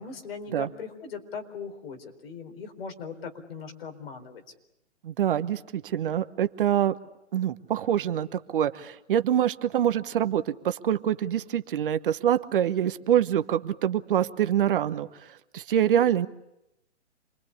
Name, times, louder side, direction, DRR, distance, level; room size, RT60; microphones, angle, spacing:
voice 1, 0.0-4.4, left 5 dB, 55° left, 5 dB, 4.3 m, -39 dB
voice 2, 5.0-7.0 7.3-16.3, right 10 dB, 50° right, 11 dB, 1.1 m, -25 dB
27.0 x 21.5 x 8.5 m, 0.89 s
hypercardioid pair, 145°, 35 cm